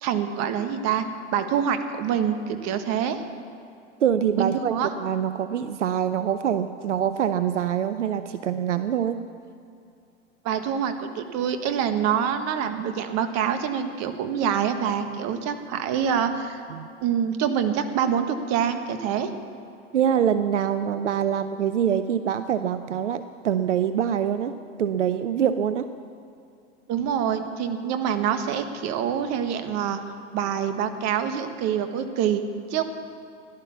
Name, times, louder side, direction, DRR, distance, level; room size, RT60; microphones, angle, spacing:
voice 1, 0.0-3.2 4.4-4.9 10.4-16.6 17.0-19.3 26.9-30.0 30.3-32.4 32.7-32.8, right 8 dB, 50° right, 8 dB, 1.5 m, -26 dB
voice 2, 4.0-4.7 5.0-9.2 16.7-16.9 19.9-24.5 24.8-25.9, right 9 dB, 90° right, 11 dB, 0.6 m, -24 dB
16.5 x 11.5 x 7.1 m, 2.6 s
hypercardioid pair, 90°, 35 cm